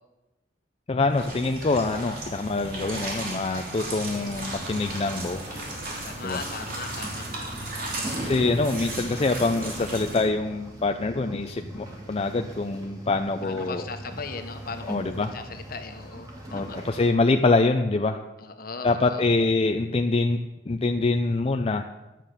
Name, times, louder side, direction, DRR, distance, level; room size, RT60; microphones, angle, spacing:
voice 1, 0.9-5.4 6.2-6.4 8.2-13.8 14.9-15.3 16.5-18.2 18.8-21.9, left 3 dB, 35° left, 5 dB, 0.5 m, -25 dB
sound 1, 1.1-10.3, right 2 dB, 55° right, 3.2 m, -35 dB
sound 2, 4.1-17.1, right 1 dB, 20° right, 2.4 m, -40 dB
voice 2, 6.0-8.3 13.4-17.0 18.4-19.2, left 4 dB, 55° left, 6 dB, 1.2 m, -39 dB
11.5 x 7.5 x 6.7 m, 1.0 s
head